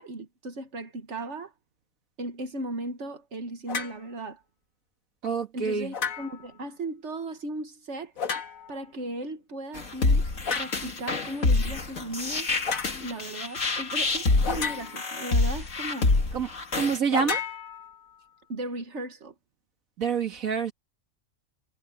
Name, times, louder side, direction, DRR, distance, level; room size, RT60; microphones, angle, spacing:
voice 1, 0.0-1.5 2.2-4.4 5.5-8.1 8.7-10.2 10.5-12.5 13.0-16.1 18.5-19.3, right 2 dB, 60° right, 1.9 m, -36 dB
sound 1, 3.7-4.0 5.9-6.5 8.2-8.8 10.5-10.8 12.7-13.0 14.4-15.2 17.1-18.2, left 6 dB, 90° left, 1.9 m, -32 dB
voice 2, 5.2-5.9 16.3-17.4 20.0-20.7, right 6 dB, 85° right, 2.3 m, -27 dB
sound 2, 9.7-17.0, left 3 dB, 70° left, 2.7 m, -26 dB
omnidirectional pair, 1.4 m